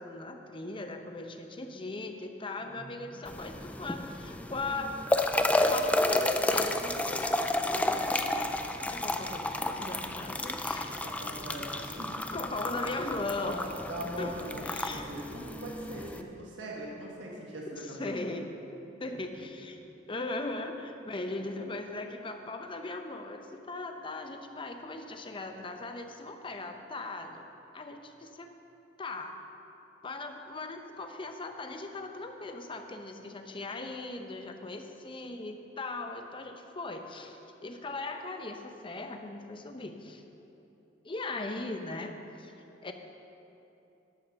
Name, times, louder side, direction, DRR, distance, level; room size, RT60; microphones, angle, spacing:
voice 1, 0.0-5.0 5.7-7.4 7.7-8.4 8.9-11.0 12.3-13.7 14.2-15.1 17.7-18.5 19.0-19.8 20.1-27.5 27.7-28.5 29.0-29.4 30.0-40.2 41.0-42.5 42.8-42.9, left 2 dB, 25° left, 5 dB, 0.7 m, -39 dB
voice 2, 2.6-3.2 11.0-12.2 13.4-18.0 19.1-19.2, right 1 dB, 75° right, -3 dB, 1.6 m, -41 dB
sound 1, 3.3-16.2, left 1 dB, 10° left, 0.4 m, -31 dB
12.5 x 6.5 x 6.4 m, 2.9 s
head